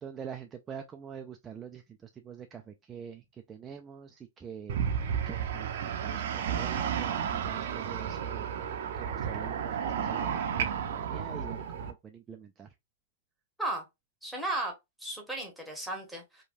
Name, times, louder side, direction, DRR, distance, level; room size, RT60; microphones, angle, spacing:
voice 1, 0.0-4.9 5.3-12.7, right 8 dB, 20° right, 0.3 m, -45 dB
sound 1, 4.7-11.9, right 8 dB, 65° right, 0.6 m, -32 dB
voice 2, 14.2-16.4, right 2 dB, ahead, 1.0 m, -35 dB
3.1 x 2.2 x 2.5 m
hypercardioid pair, 140°, 0 cm